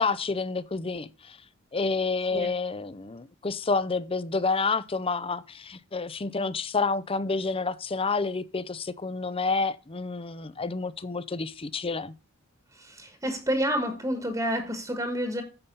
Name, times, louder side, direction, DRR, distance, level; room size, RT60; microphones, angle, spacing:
voice 1, 0.0-1.4 1.7-12.1, left 4 dB, 25° left, 0.6 m, -29 dB
voice 2, 12.7-15.4, equal, 15° right, 1.4 m, -29 dB
9.9 x 7.2 x 5.4 m
head